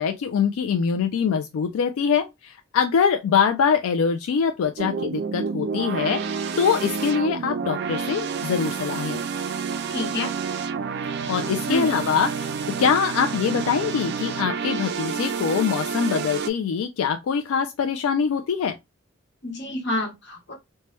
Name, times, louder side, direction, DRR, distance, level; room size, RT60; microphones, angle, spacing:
voice 1, 0.0-9.2 11.3-12.5 12.8-18.7, left 6 dB, 85° left, 0.3 m, -23 dB
sound 1, 4.8-16.5, right 5 dB, 55° right, 0.3 m, -29 dB
voice 2, 9.9-10.3 11.7-11.9 19.4-20.5, left 1 dB, 55° left, 1.0 m, -28 dB
3.0 x 2.2 x 3.0 m
head